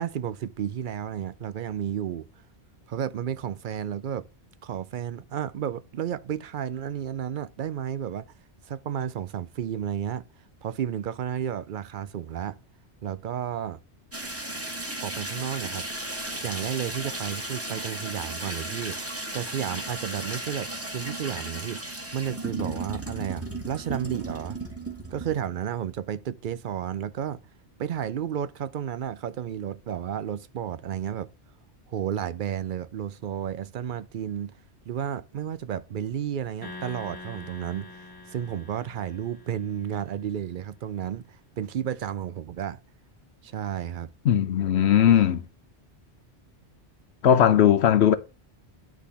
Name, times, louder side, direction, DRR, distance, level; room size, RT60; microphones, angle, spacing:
voice 1, 0.0-2.3 2.9-4.3 4.6-8.3 8.6-10.3 10.6-12.6 13.0-13.8 15.0-15.9 16.4-19.0 19.3-24.6 25.1-27.4 27.8-31.3 31.9-34.6 34.9-42.8 43.4-44.1, right 9 dB, 55° right, 0.6 m, -32 dB
sound 1, 14.1-25.5, right 2 dB, 10° right, 1.7 m, -35 dB
sound 2, 36.6-40.1, left 2 dB, 20° left, 1.0 m, -44 dB
voice 2, 44.2-45.4 47.2-48.1, left 9 dB, 75° left, 0.9 m, -18 dB
10.5 x 3.5 x 5.6 m
omnidirectional pair, 1.2 m